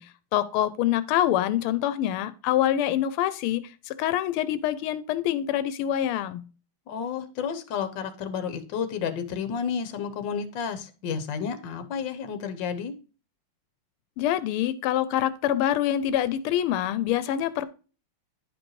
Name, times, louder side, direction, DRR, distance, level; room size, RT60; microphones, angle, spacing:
voice 1, 0.0-6.4 14.2-17.7, left 11 dB, 90° left, 1.5 m, -25 dB
voice 2, 6.9-12.9, left 7 dB, 65° left, 1.5 m, -31 dB
10.5 x 5.2 x 3.1 m
omnidirectional pair, 2.3 m